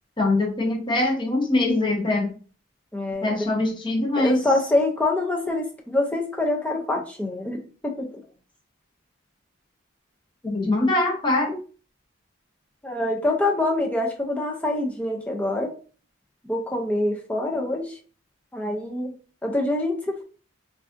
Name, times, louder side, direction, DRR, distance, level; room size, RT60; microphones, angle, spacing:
voice 1, 0.2-2.3 3.2-4.4 10.4-11.6, left 2 dB, 25° left, 0 dB, 0.8 m, -23 dB
voice 2, 2.9-3.5 4.2-8.1 12.8-15.8 16.5-18.0 18.5-19.1 19.4-20.2, left 2 dB, 5° left, 1 dB, 0.4 m, -25 dB
4.5 x 2.4 x 2.5 m, 0.38 s
head